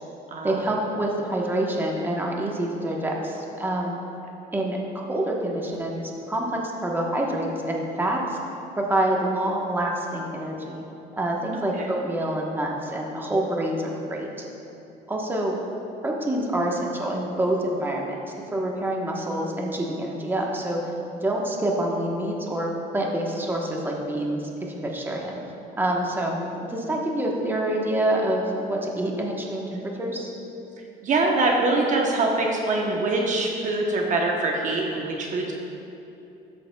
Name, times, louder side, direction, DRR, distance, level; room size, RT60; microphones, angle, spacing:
voice 1, 0.4-4.0 4.5-8.4 8.8-10.8 11.2-14.3 15.1-15.5 16.0-18.2 18.5-20.8 21.1-24.4 24.7-25.4 25.8-30.3, right 1 dB, 10° right, -1 dB, 1.0 m, -27 dB
voice 2, 31.0-35.5, right 2 dB, 45° right, 0 dB, 0.9 m, -24 dB
13.0 x 6.9 x 2.3 m, 2.9 s
cardioid pair, 110°, 17 cm